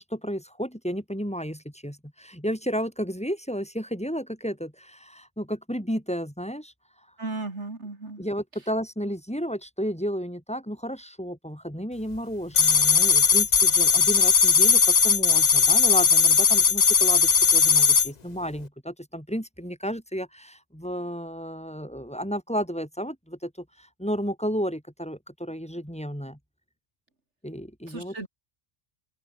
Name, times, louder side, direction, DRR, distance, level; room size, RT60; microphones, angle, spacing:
voice 1, 0.0-6.7 8.2-23.5 23.8-26.4 27.4-28.1, equal, 5° left, 6.0 m, -32 dB
voice 2, 7.2-8.2 27.9-28.3, right 3 dB, 75° right, 3.9 m, -35 dB
sound 1, 12.6-18.1, left 6 dB, 40° left, 0.9 m, -18 dB
open air
omnidirectional pair, 1.2 m